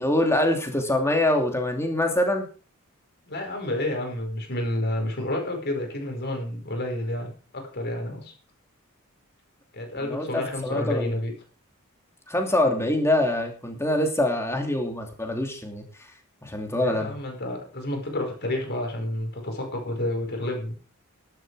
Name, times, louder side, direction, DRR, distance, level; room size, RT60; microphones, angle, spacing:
voice 1, 0.0-2.5 10.0-11.2 12.3-16.1 16.4-17.2, left 1 dB, 10° left, 3 dB, 2.8 m, -25 dB
voice 2, 3.3-8.3 9.7-11.3 16.8-20.7, left 1 dB, 50° left, 3 dB, 5.2 m, -30 dB
12.0 x 11.5 x 4.9 m, 0.39 s
head